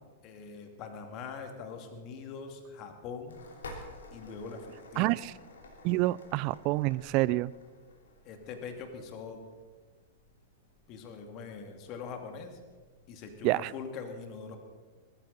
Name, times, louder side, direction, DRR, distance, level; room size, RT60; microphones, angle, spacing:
voice 1, 0.2-3.4 4.1-5.2 8.2-9.4 10.9-12.6 13.1-14.6, left 5 dB, 40° left, 5 dB, 2.6 m, -42 dB
sound 1, 3.3-13.3, left 2 dB, 70° left, 3.2 m, -52 dB
voice 2, 5.0-5.3 5.8-7.5 13.4-13.7, right 19 dB, 45° right, 21 dB, 0.4 m, -27 dB
20.5 x 14.0 x 4.3 m, 1.4 s
figure-of-eight pair, 100°, 0 cm